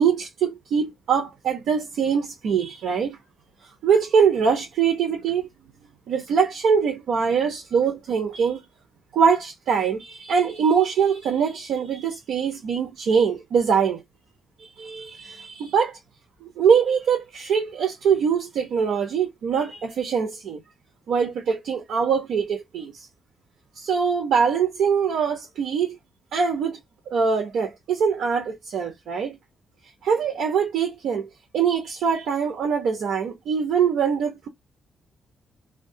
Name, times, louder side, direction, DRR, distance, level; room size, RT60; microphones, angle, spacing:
voice 1, 0.0-3.2 3.8-5.5 6.1-8.6 9.1-14.0 14.6-16.0 16.4-20.6 21.1-23.1 23.8-26.0 26.3-26.8 27.1-29.4 30.0-34.5, right 6 dB, 90° right, 0.7 m, -23 dB
2.3 x 2.2 x 2.6 m
cardioid pair, 120°, 0 cm